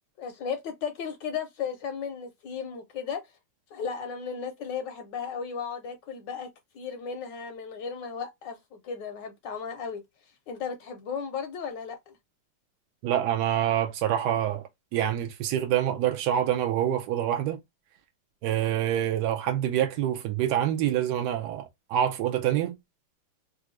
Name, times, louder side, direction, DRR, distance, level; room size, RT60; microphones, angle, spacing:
voice 1, 0.2-3.2 3.7-6.5 6.7-10.0 10.5-12.1, left 6 dB, 75° left, 1.1 m, -35 dB
voice 2, 13.0-17.6 18.4-22.7, right 11 dB, 80° right, 0.9 m, -26 dB
3.4 x 2.5 x 3.1 m
omnidirectional pair, 2.3 m